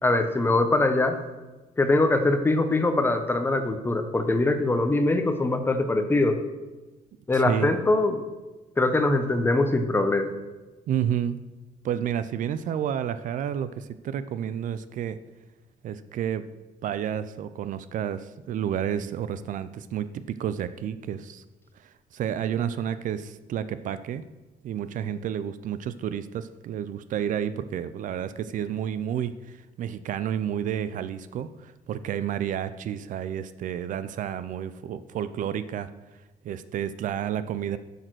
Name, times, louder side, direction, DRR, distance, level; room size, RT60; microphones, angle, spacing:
voice 1, 0.0-1.2 1.8-6.4 7.3-8.2 8.8-10.3, left 2 dB, 15° left, 7 dB, 0.8 m, -22 dB
voice 2, 7.3-7.7 10.9-11.4 11.8-15.2 15.8-16.5 16.8-21.4 22.1-24.2 24.6-35.9 36.4-37.8, right 9 dB, 60° right, 13 dB, 0.5 m, -30 dB
10.5 x 6.6 x 6.2 m, 1.2 s
cardioid pair, 165°, 15 cm